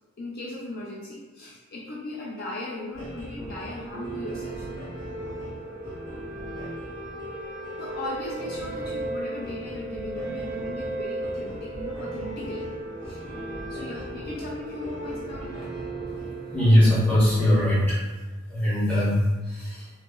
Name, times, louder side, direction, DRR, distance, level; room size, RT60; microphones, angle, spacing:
voice 1, 0.2-4.7 7.8-12.7 13.0-13.2 13.7-15.7, left 2 dB, 45° left, -4 dB, 0.4 m, -37 dB
sound 1, 2.9-17.9, equal, 75° left, 1.4 m, -41 dB
sound 2, 3.9-17.4, right 2 dB, 50° right, 0.5 m, -36 dB
voice 2, 16.5-18.0 18.5-19.9, left 1 dB, 5° left, -11 dB, 1.1 m, -21 dB
2.9 x 2.8 x 2.3 m, 1.2 s
head